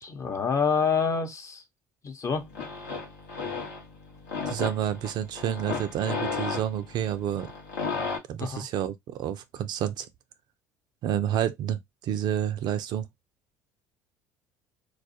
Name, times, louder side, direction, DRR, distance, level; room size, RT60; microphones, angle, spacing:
voice 1, 0.0-1.6 2.0-2.5 8.4-8.7, left 5 dB, 35° left, 0.7 m, -27 dB
sound 1, 2.3-8.2, left 4 dB, 80° left, 0.8 m, -34 dB
voice 2, 4.5-7.5 8.3-10.1 11.0-13.1, right 10 dB, 50° right, 0.3 m, -29 dB
2.4 x 2.1 x 2.6 m
hypercardioid pair, 60°, 9 cm